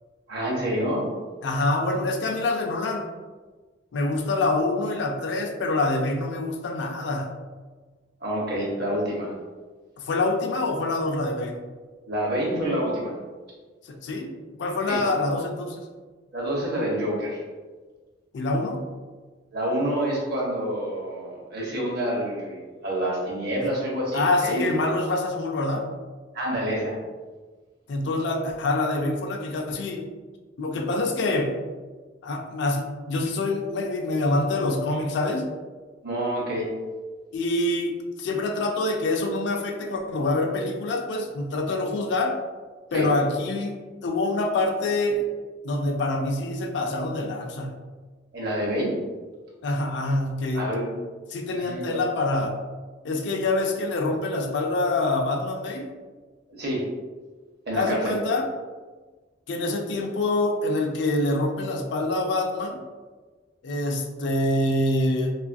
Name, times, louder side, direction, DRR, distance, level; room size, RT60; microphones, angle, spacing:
voice 1, 0.3-1.0 8.2-9.3 12.1-13.1 14.9-15.0 16.3-17.4 19.5-24.7 26.3-27.0 36.0-36.7 42.9-43.1 48.3-48.9 50.5-50.9 51.5-52.0 56.5-56.9 57.7-58.1, right 1 dB, 60° right, -3 dB, 0.8 m, -27 dB
voice 2, 1.4-3.1 3.9-7.3 10.0-11.6 13.8-14.3 14.6-15.9 18.3-18.8 23.6-23.7 24.1-25.9 27.9-30.0 30.6-31.5 32.2-35.4 37.3-42.4 42.9-43.8 44.0-45.3 45.6-47.7 49.6-50.7 51.3-52.6 53.0-55.9 57.7-58.5 59.5-62.8 63.6-65.3, left 2 dB, 65° left, 3 dB, 0.4 m, -26 dB
2.9 x 2.4 x 2.5 m, 1.4 s
head